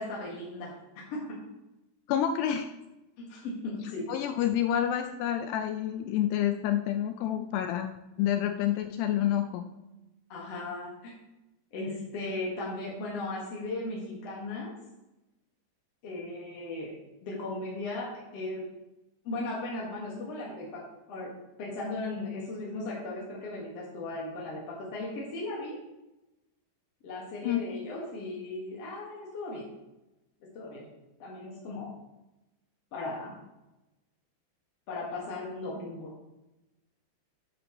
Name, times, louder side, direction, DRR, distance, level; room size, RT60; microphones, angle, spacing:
voice 1, 0.0-1.4 3.2-4.1 10.3-11.1 11.7-14.7 16.0-17.0 17.2-18.7 19.2-20.8 21.1-25.8 27.0-29.7 30.4-30.9 31.2-31.9 32.9-33.3 34.9-36.1, left 2 dB, 55° left, -4 dB, 1.9 m, -37 dB
voice 2, 2.1-2.7 4.1-7.9 8.2-9.7 27.4-27.7, left 10 dB, 85° left, 7 dB, 2.4 m, -28 dB
9.9 x 9.3 x 3.1 m, 0.97 s
omnidirectional pair, 5.2 m